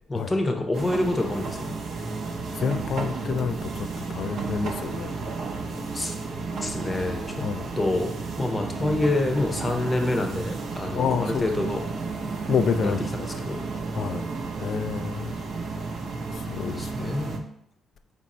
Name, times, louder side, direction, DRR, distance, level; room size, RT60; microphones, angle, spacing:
voice 1, 0.1-1.7 5.9-6.1 6.6-7.3 7.8-8.1 8.4-11.8 12.8-13.6 16.7-17.4, left 2 dB, 25° left, 4 dB, 0.8 m, -27 dB
sound 1, 0.7-17.4, right 4 dB, 60° right, 0.6 m, -32 dB
voice 2, 2.6-3.6 4.1-5.1 7.4-7.6 11.0-11.4 12.5-13.0 14.0-14.2 14.6-15.3 16.5-16.8, left 6 dB, 65° left, 11 dB, 0.3 m, -27 dB
4.3 x 2.6 x 4.2 m, 0.76 s
cardioid pair, 90°, 0 cm